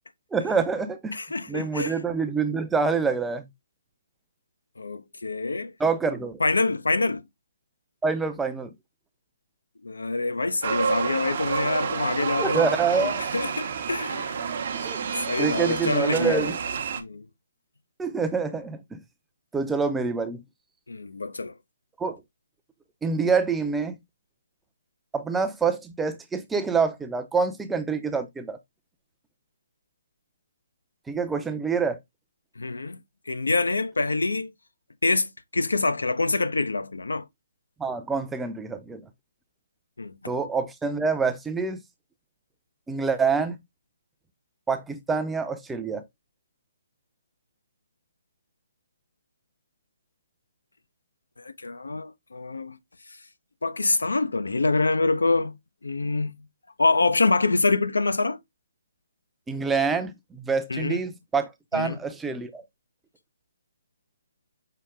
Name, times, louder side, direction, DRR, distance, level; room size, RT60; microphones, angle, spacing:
voice 1, 0.3-1.2 1.5-3.4 5.8-6.4 8.0-8.7 12.4-13.2 14.8-15.0 15.4-16.6 18.0-19.0 19.5-20.4 22.0-22.2 23.0-24.0 25.1-28.6 31.1-32.0 37.8-39.0 40.3-41.8 42.9-43.6 44.7-46.0 59.5-62.6, right 5 dB, 10° right, 0.5 m, -26 dB
voice 2, 1.1-1.9 4.8-5.7 6.4-7.2 9.8-14.8 15.3-16.5 17.0-17.3 20.9-21.5 32.6-33.0 33.3-34.5 35.0-37.3 40.0-40.3 51.4-52.8 53.6-55.5 55.8-56.3 56.8-58.4 60.7-61.0 61.7-62.0, left 3 dB, 85° left, 0.6 m, -26 dB
sound 1, 10.6-17.0, right 6 dB, 50° right, 0.7 m, -29 dB
5.7 x 2.2 x 3.6 m
hypercardioid pair, 145°, 0 cm